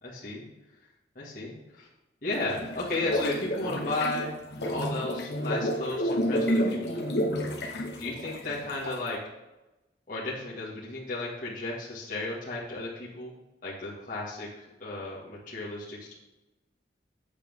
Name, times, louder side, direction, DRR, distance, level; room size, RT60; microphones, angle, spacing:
voice 1, 0.0-0.4 1.2-1.9 2.2-4.3 4.7-7.1 8.0-9.2 10.1-13.3 13.6-16.1, left 2 dB, 45° left, -7 dB, 2.0 m, -34 dB
sound 1, 2.3-9.1, equal, 65° left, 1.3 m, -30 dB
8.6 x 7.5 x 3.7 m, 1.0 s
head